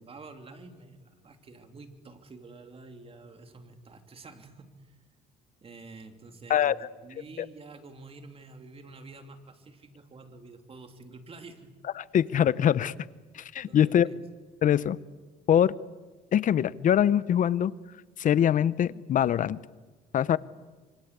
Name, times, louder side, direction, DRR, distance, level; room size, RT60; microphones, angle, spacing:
voice 1, 0.0-5.0 5.6-11.7 13.7-14.2, right 3 dB, 35° right, 6 dB, 3.1 m, -48 dB
voice 2, 12.1-12.9 13.3-14.1 14.6-15.0 15.5-15.7 16.3-17.7 18.2-19.6 20.1-20.4, left 10 dB, 50° left, 18 dB, 0.8 m, -23 dB
26.5 x 24.5 x 8.3 m, 1.3 s
cardioid pair, 110°, 17 cm